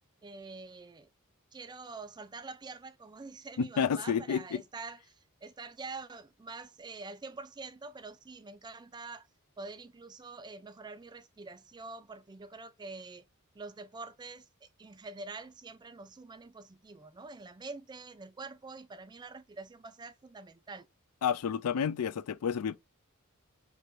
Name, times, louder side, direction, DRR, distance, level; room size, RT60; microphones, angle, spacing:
voice 1, 0.2-1.1 1.5-9.3 9.6-13.3 13.5-20.9, right 3 dB, 20° right, 0.4 m, -46 dB
voice 2, 3.6-4.6 21.2-22.8, left 7 dB, 90° left, 0.4 m, -30 dB
4.7 x 2.5 x 3.1 m
head